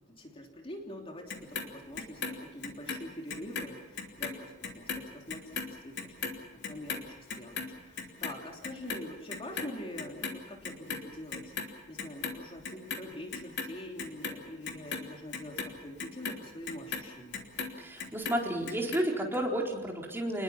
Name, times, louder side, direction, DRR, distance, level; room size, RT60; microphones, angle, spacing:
voice 1, 0.1-6.1 6.5-17.4, left 1 dB, 30° left, 1 dB, 3.2 m, -45 dB
Clock, 1.3-3.7 4.0-10.4 10.6-11.7 12.0-13.0 13.3-17.7 18.0-19.0 19.3-19.4, left 5 dB, 55° left, 3.1 m, -37 dB
voice 2, 17.8-20.4, right 1 dB, 10° right, -1 dB, 4.2 m, -31 dB
29.0 x 21.0 x 5.9 m, 1.1 s
head